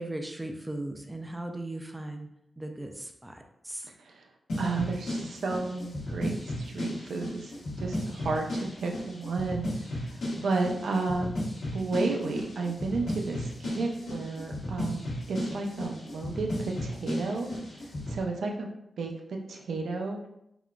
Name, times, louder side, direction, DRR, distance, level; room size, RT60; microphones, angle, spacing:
voice 1, 0.0-2.3 2.6-3.9, right 1 dB, 10° right, 4 dB, 0.3 m, -38 dB
sound 1, 4.5-18.2, left 1 dB, 85° left, 0.9 m, -35 dB
voice 2, 4.6-7.5 7.8-11.4 11.7-15.0 15.3-18.7 19.0-20.2, right 3 dB, 85° right, 2 dB, 0.4 m, -32 dB
3.5 x 2.4 x 2.2 m, 0.79 s
wide cardioid pair, 125°, 0 cm